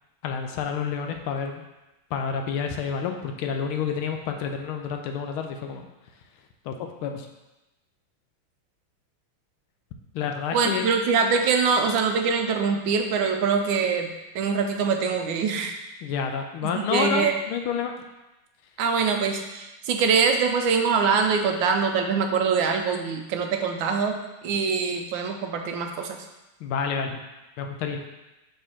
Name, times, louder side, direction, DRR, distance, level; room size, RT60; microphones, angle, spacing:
voice 1, 0.2-1.6 2.1-5.9 6.6-6.7 7.0-7.3 10.1-10.9 16.0-17.9 26.6-27.2 27.6-28.1, left 6 dB, 80° left, 4 dB, 1.4 m, -29 dB
voice 2, 10.5-15.8 16.6-17.3 18.8-24.2 24.4-26.2, right 5 dB, 75° right, 4 dB, 1.2 m, -24 dB
5.5 x 4.0 x 4.3 m, 1.0 s
omnidirectional pair, 2.4 m